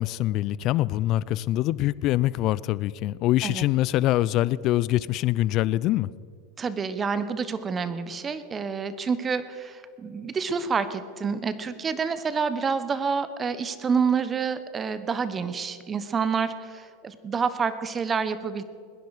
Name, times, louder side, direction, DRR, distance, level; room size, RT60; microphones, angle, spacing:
voice 1, 0.0-6.1, left 15 dB, 50° left, 21 dB, 0.4 m, -24 dB
voice 2, 6.6-18.6, right 5 dB, 25° right, 13 dB, 1.1 m, -28 dB
21.0 x 10.5 x 4.9 m, 2.3 s
hypercardioid pair, 100°, 0 cm